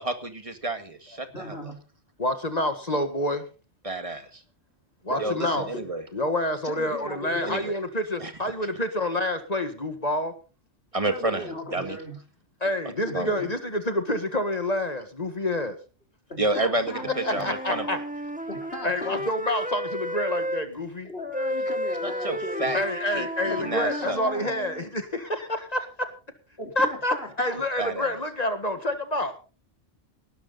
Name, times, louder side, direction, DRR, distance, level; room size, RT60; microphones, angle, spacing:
voice 1, 0.0-1.6 3.8-4.4 5.2-6.0 7.4-7.7 8.2-8.3 10.9-12.0 13.1-13.3 16.4-17.9 22.0-22.8 23.1-24.2 27.8-28.1, right 2 dB, 30° right, 7 dB, 2.0 m, -30 dB
voice 2, 1.3-1.8 5.1-5.9 6.6-7.6 11.1-12.2 13.1-13.5 16.3-17.5 17.8-17.9 18.5-19.2 21.0-22.8 23.5-24.5 26.6-27.6, left 1 dB, 55° left, 3 dB, 4.1 m, -37 dB
voice 3, 2.2-3.5 5.0-5.6 6.1-10.3 12.6-15.8 17.2-18.0 18.8-21.1 22.7-26.1 26.8-29.4, left 1 dB, 35° left, 8 dB, 1.8 m, -28 dB
Wind instrument woodwind instrument, 16.7-20.6 21.3-24.9, equal, 10° right, 0.7 m, -33 dB
18.5 x 12.5 x 4.0 m, 0.35 s
omnidirectional pair, 1.2 m